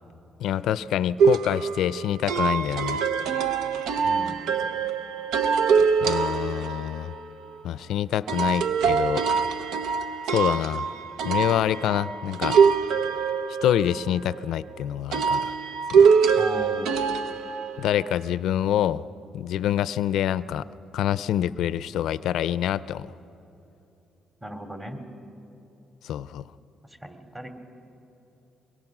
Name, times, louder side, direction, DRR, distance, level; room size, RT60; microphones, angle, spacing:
voice 1, 0.4-3.0 6.0-7.1 7.6-9.2 10.3-10.9 11.2-12.6 13.6-15.6 15.9-16.1 17.8-19.1 19.3-20.7 20.9-23.1 26.0-26.5, left 11 dB, 80° left, 17 dB, 0.4 m, -26 dB
sound 1, 1.2-7.0 8.3-14.4 15.1-18.1, right 6 dB, 85° right, 0.8 m, -23 dB
voice 2, 4.0-4.4 16.3-16.9 24.4-25.0 26.8-27.5, right 1 dB, 20° right, 5 dB, 2.6 m, -37 dB
24.0 x 21.5 x 6.0 m, 2.9 s
cardioid pair, 90°, 0 cm